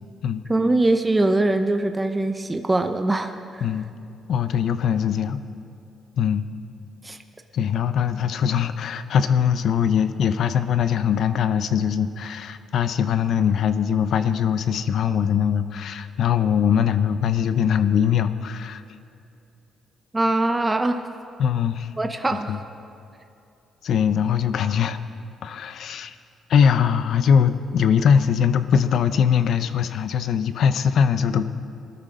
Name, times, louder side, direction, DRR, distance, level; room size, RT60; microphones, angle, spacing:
voice 1, 0.5-3.7 7.0-7.2 20.1-21.0 22.0-22.6, right 2 dB, 15° right, 7 dB, 0.7 m, -22 dB
voice 2, 4.3-5.4 6.2-6.5 7.5-18.8 21.4-21.9 22.5-22.6 23.8-25.0 25.4-26.1 26.5-31.4, left 7 dB, 70° left, 12 dB, 0.7 m, -21 dB
20.5 x 13.0 x 3.8 m, 2.7 s
cardioid pair, 90°, 0 cm